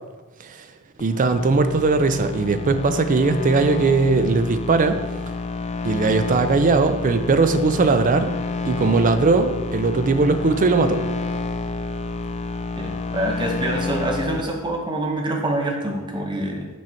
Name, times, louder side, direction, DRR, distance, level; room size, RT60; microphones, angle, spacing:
sound 1, 1.0-14.4, left 3 dB, 30° left, 0.4 m, -29 dB
voice 1, 1.0-5.0 5.8-8.3 8.7-11.0, right 3 dB, 35° right, 9 dB, 0.4 m, -19 dB
voice 2, 12.8-16.7, right 1 dB, 20° right, 1 dB, 0.9 m, -26 dB
6.2 x 4.5 x 4.4 m, 1.2 s
head